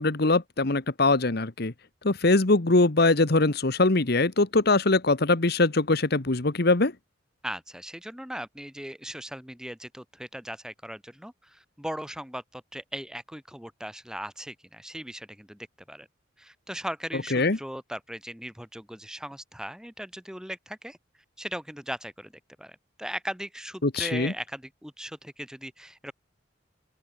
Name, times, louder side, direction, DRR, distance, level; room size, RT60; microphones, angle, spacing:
voice 1, 0.0-1.7 2.0-6.9 17.3-17.6 23.8-24.3, left 2 dB, 55° left, 1.3 m, -22 dB
voice 2, 7.4-16.1 16.4-21.0 21.4-22.3 22.6-26.1, equal, 5° right, 3.1 m, -38 dB
open air
head